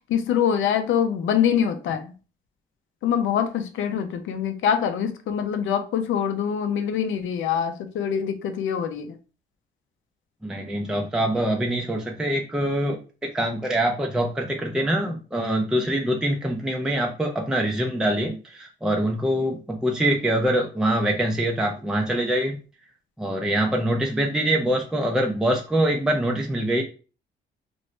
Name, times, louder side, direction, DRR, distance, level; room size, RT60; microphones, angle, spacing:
voice 1, 0.1-2.1 3.0-9.2, left 8 dB, 75° left, 7 dB, 0.6 m, -24 dB
voice 2, 10.4-22.6 23.2-26.8, right 1 dB, 5° right, 1 dB, 0.4 m, -24 dB
3.1 x 2.6 x 3.1 m, 0.35 s
cardioid pair, 90°, 20 cm